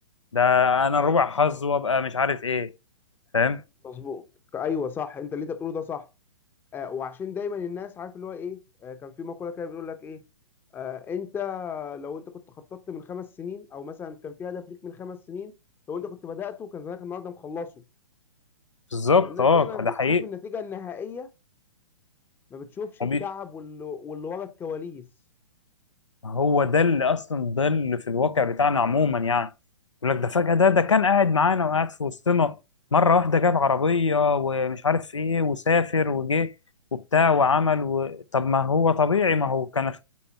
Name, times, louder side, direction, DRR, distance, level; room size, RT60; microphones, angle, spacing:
voice 1, 0.3-2.7 3.3-3.6 18.9-20.2 23.0-23.2 26.2-29.5 30.0-32.6 32.9-36.5 36.9-40.0, left 5 dB, 90° left, 0.6 m, -22 dB
voice 2, 3.8-4.3 4.5-6.1 6.7-10.2 10.7-15.5 15.9-17.7 19.2-21.3 22.5-25.1, left 6 dB, 15° left, 0.7 m, -35 dB
8.5 x 4.4 x 2.8 m
figure-of-eight pair, 120°, 15 cm